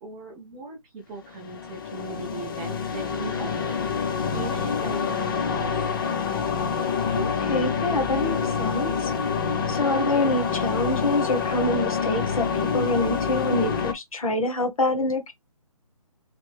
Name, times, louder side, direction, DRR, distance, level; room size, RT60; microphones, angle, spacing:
voice 1, 0.0-3.8 4.3-6.2, right 3 dB, 10° right, 0.3 m, -38 dB
sound 1, 1.3-13.9, left 6 dB, 35° left, 0.6 m, -27 dB
voice 2, 7.1-9.1 9.7-12.5 12.7-15.3, left 2 dB, 70° left, 1.3 m, -26 dB
3.3 x 2.5 x 3.4 m
figure-of-eight pair, 155°, 19 cm